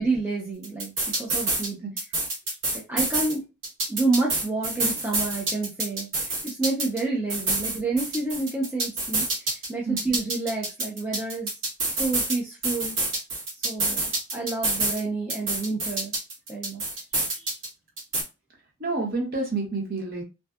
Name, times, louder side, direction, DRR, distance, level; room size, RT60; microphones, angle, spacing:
voice 1, 0.0-1.8 2.7-3.4 3.9-11.5 11.9-13.0 13.6-16.1 16.5-17.5, right 3 dB, 10° right, 0.5 m, -29 dB
sound 1, 0.6-1.7 2.0-3.3 3.6-7.0 7.3-9.7 10.0-12.4 12.6-15.0 15.3-17.7 18.0-18.2, right 2 dB, 75° right, 1.2 m, -27 dB
voice 2, 18.8-20.2, right 3 dB, 45° right, 0.9 m, -28 dB
2.6 x 2.2 x 2.3 m
head